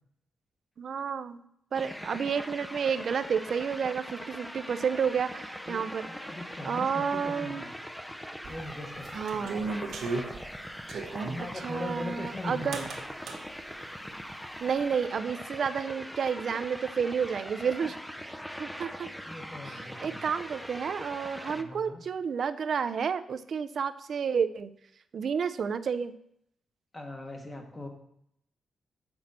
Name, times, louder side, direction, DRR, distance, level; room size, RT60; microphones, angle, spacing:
voice 1, 0.8-1.4 1.7-6.0 6.6-7.6 9.1-9.7 11.6-12.9 14.6-17.9 18.6-19.1 20.0-24.7 25.1-26.1, right 6 dB, 55° right, 11 dB, 0.4 m, -30 dB
sound 1, 1.7-21.6, equal, 5° left, 0.4 m, -41 dB
voice 2, 5.7-7.7 8.5-9.5 11.3-12.9 17.2-17.9 18.9-20.2 21.5-22.0 26.9-27.9, left 1 dB, 20° left, 3 dB, 1.2 m, -41 dB
sound 2, 8.4-11.4 12.7-13.4, right 3 dB, 85° right, 1.0 m, -35 dB
7.6 x 6.0 x 4.1 m, 0.73 s
wide cardioid pair, 135°, 0 cm